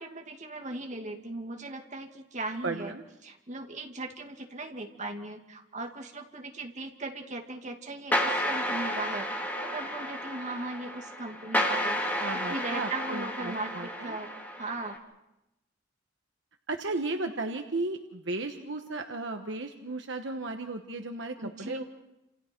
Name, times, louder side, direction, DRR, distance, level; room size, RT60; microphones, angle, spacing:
voice 1, 0.0-2.9 3.2-9.3 9.6-12.0 12.5-14.3 14.6-15.0 21.4-21.8, right 2 dB, 40° right, 3 dB, 2.3 m, -38 dB
voice 2, 2.6-3.0 12.2-14.2 16.7-21.8, right 2 dB, 65° right, 5 dB, 1.2 m, -35 dB
sound 1, 8.1-15.0, equal, 10° left, 2.5 m, -32 dB
29.5 x 27.5 x 4.5 m, 0.92 s
head